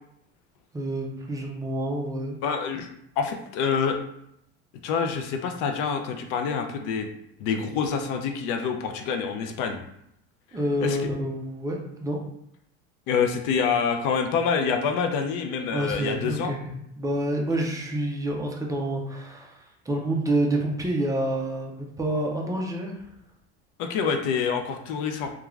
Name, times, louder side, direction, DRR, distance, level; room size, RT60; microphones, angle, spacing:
voice 1, 0.7-2.4 10.5-12.2 15.7-19.6 19.9-22.9, right 1 dB, 10° right, 0 dB, 0.3 m, -28 dB
voice 2, 2.4-2.9 3.2-4.0 4.8-7.1 7.4-9.8 10.8-11.0 13.1-16.5 23.8-25.3, left 6 dB, 70° left, 5 dB, 0.5 m, -26 dB
3.0 x 2.3 x 2.3 m, 0.75 s
cardioid pair, 125°, 34 cm